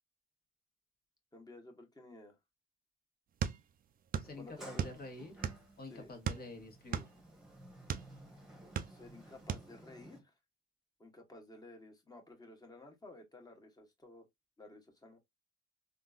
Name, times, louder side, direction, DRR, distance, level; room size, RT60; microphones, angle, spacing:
voice 1, 1.3-2.4 4.4-4.9 5.8-6.1 8.9-10.3 11.0-14.3 14.6-15.2, left 2 dB, 20° left, 1.2 m, -54 dB
sound 1, 3.4-4.4 4.6-5.8 6.2-8.1 8.6-9.2 9.5-9.7, right 8 dB, 45° right, 0.4 m, -37 dB
voice 2, 4.2-5.3 5.8-7.0, left 2 dB, 50° left, 1.3 m, -48 dB
Sliding door, 4.2-10.2, right 1 dB, 5° right, 1.2 m, -55 dB
3.6 x 2.5 x 2.3 m
cardioid pair, 90°, 20 cm